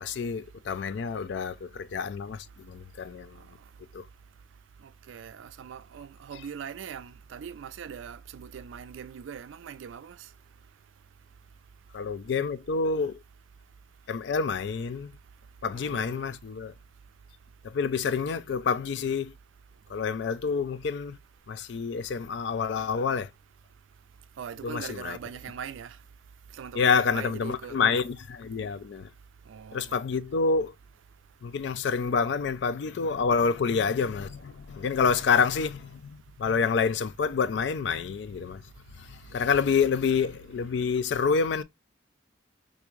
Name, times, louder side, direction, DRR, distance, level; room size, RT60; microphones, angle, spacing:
voice 1, 0.0-3.4 3.9-4.0 11.9-13.2 14.1-15.1 15.6-16.7 17.6-19.3 19.9-21.2 21.5-23.3 24.6-25.2 26.8-29.1 29.7-30.7 31.4-38.6 39.0-41.6, left 5 dB, 60° left, 0.3 m, -28 dB
voice 2, 5.1-10.2 15.7-16.3 24.4-26.0 26.6-27.8 29.5-29.8, right 7 dB, 75° right, 0.3 m, -41 dB
3.5 x 2.6 x 3.0 m
head